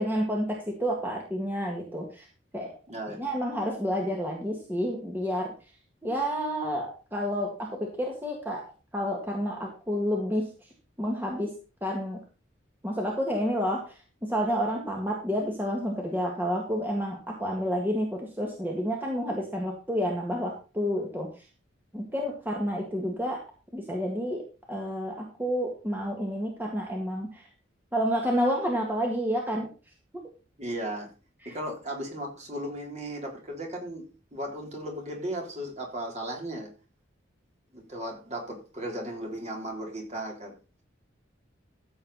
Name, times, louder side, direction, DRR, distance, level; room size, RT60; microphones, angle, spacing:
voice 1, 0.0-2.3 2.5-2.7 3.2-5.5 6.0-8.6 8.9-10.5 11.0-11.5 11.8-12.2 12.8-21.5 21.9-23.4 23.7-24.4 24.7-27.5 27.9-29.7 31.4-31.5, equal, 10° right, 0 dB, 2.0 m, -29 dB
voice 2, 2.9-3.2 30.6-31.1 31.5-34.0 34.3-36.7 37.7-40.5, right 1 dB, 35° right, 1 dB, 3.7 m, -36 dB
14.5 x 7.7 x 4.2 m, 0.33 s
head